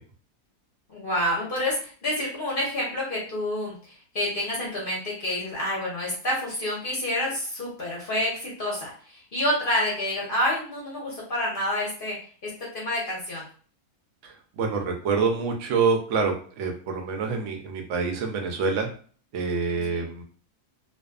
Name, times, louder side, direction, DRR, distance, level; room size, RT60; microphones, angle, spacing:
voice 1, 0.9-12.2 12.7-13.4 19.7-20.0, left 1 dB, 45° left, -5 dB, 0.7 m, -28 dB
voice 2, 14.2-18.9 19.3-20.2, right 4 dB, 65° right, 3 dB, 0.8 m, -26 dB
2.5 x 2.3 x 2.3 m, 0.44 s
omnidirectional pair, 1.6 m